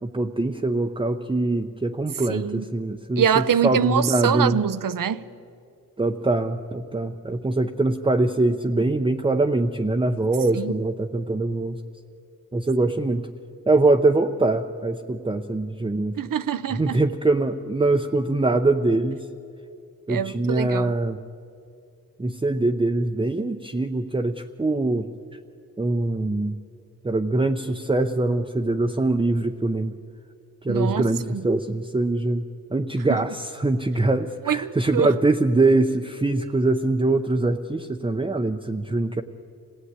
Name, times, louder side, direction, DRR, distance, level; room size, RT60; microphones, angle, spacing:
voice 1, 0.0-4.6 6.0-11.8 12.5-13.3 13.7-16.2 16.7-19.3 20.1-21.2 22.2-25.1 25.8-26.6 27.0-29.9 30.6-39.2, right 2 dB, 15° right, 0.7 m, -23 dB
voice 2, 2.3-2.6 3.2-5.3 10.6-10.7 16.2-17.0 20.1-20.9 30.7-31.4 33.1-33.2 34.5-35.1, right 8 dB, 70° right, 0.8 m, -24 dB
26.5 x 17.5 x 9.7 m
wide cardioid pair, 130°, 34 cm